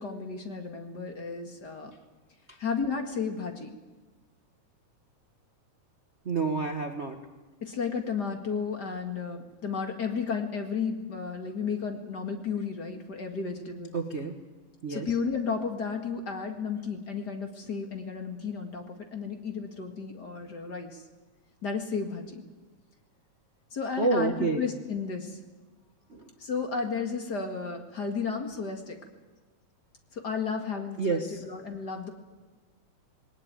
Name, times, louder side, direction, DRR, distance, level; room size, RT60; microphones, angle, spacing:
voice 1, 0.0-1.9 2.6-3.7 7.6-13.9 14.9-21.0 21.6-22.4 23.7-25.4 26.4-29.0 30.1-32.1, left 5 dB, 35° left, 5 dB, 2.2 m, -33 dB
voice 2, 6.2-7.2 13.9-14.4 14.8-15.1 24.0-24.6 26.1-26.3 31.0-31.4, right 4 dB, 75° right, 4 dB, 0.6 m, -29 dB
21.0 x 18.5 x 9.1 m, 1.2 s
omnidirectional pair, 3.5 m